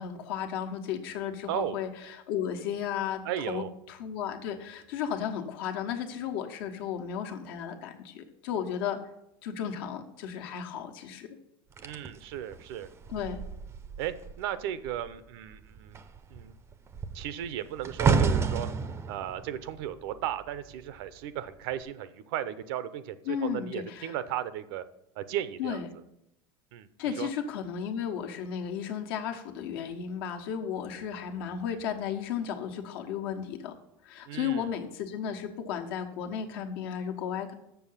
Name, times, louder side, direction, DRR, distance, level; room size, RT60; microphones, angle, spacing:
voice 1, 0.0-3.2 3.5-9.0 9.4-11.3 13.1-13.4 23.3-24.1 25.6-25.9 27.0-33.7 34.0-37.5, left 8 dB, 70° left, 4 dB, 1.2 m, -34 dB
voice 2, 1.5-1.8 3.2-3.7 11.8-12.9 14.0-16.0 16.3-16.5 17.1-18.7 19.1-24.8 25.2-25.8 26.7-27.3 34.3-34.7, right 11 dB, 70° right, 13 dB, 0.7 m, -35 dB
sound 1, 11.8-14.5 14.8-15.2 15.5-20.8 21.5-21.8, right 5 dB, 20° right, 0.5 m, -31 dB
7.0 x 6.7 x 5.6 m, 0.83 s
supercardioid pair, 145°, 13 cm